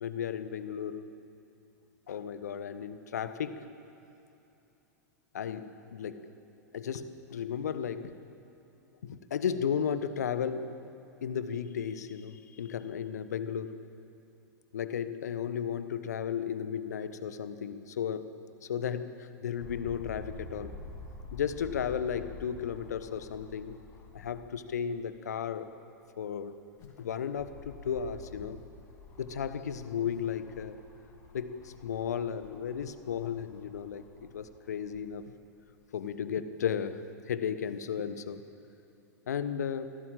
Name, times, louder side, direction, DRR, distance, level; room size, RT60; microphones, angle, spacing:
voice 1, 0.0-1.1 2.1-3.7 5.3-6.3 6.7-8.1 9.0-10.7 11.2-13.7 14.7-18.3 18.7-20.7 21.3-23.8 24.1-25.7 26.2-28.6 29.2-30.8 31.3-35.3 35.9-38.4 39.3-39.9, left 8 dB, 65° left, 12 dB, 1.2 m, -34 dB
sound 1, 19.6-24.6 25.1-25.2 26.5-35.1 35.8-35.9, left 3 dB, 30° left, 3.8 m, -49 dB
25.5 x 17.0 x 7.6 m, 2.9 s
figure-of-eight pair, 90°, 9 cm